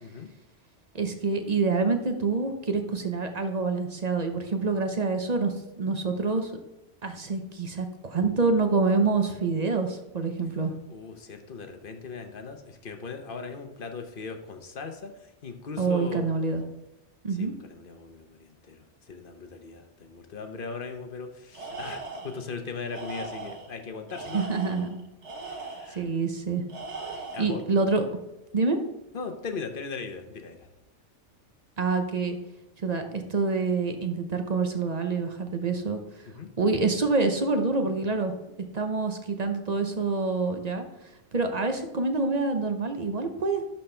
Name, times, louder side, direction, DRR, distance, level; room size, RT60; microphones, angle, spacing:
voice 1, 0.0-0.3 10.9-16.3 17.3-24.8 25.4-26.0 27.3-27.6 29.1-30.7 36.3-36.5, left 4 dB, 50° left, 6 dB, 1.0 m, -39 dB
voice 2, 0.9-6.5 7.0-10.7 15.8-16.6 17.2-17.5 24.3-25.0 25.9-26.6 27.2-28.0 28.5-28.8 31.8-32.4 32.8-36.0 36.6-38.3 38.7-40.8 41.3-43.6, right 4 dB, 40° right, 6 dB, 0.8 m, -26 dB
Tools, 21.5-22.4 22.9-23.7 24.1-26.0 26.7-27.6, right 3 dB, 75° right, 1.6 m, -39 dB
11.5 x 4.3 x 3.3 m, 0.97 s
omnidirectional pair, 1.2 m